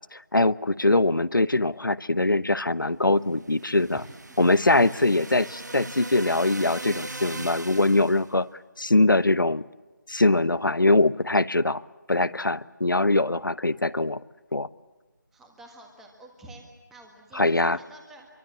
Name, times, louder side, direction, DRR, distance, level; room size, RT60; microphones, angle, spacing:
voice 1, 0.1-4.0 4.4-8.5 8.8-9.6 10.1-11.8 12.1-14.2 14.5-14.7 17.3-17.8, left 2 dB, 80° left, 16 dB, 1.0 m, -22 dB
sound 1, 3.4-8.3, right 2 dB, 60° right, 2.1 m, -39 dB
voice 2, 3.9-4.4 15.3-18.3, right 1 dB, 5° right, 2 dB, 1.6 m, -48 dB
26.5 x 23.5 x 7.3 m, 1.2 s
figure-of-eight pair, 165°, 11 cm